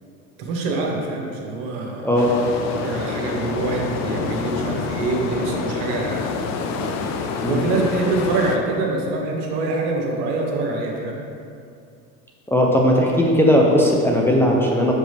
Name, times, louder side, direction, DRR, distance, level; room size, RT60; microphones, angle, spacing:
voice 1, 0.4-2.1 2.7-6.3 7.1-11.2, right 3 dB, 70° right, -1 dB, 1.4 m, -25 dB
sound 1, 2.2-8.6, left 5 dB, 45° left, 0.6 m, -27 dB
voice 2, 12.5-14.9, equal, 5° left, -2 dB, 0.7 m, -17 dB
7.5 x 5.1 x 3.5 m, 2.4 s
supercardioid pair, 110°, 38 cm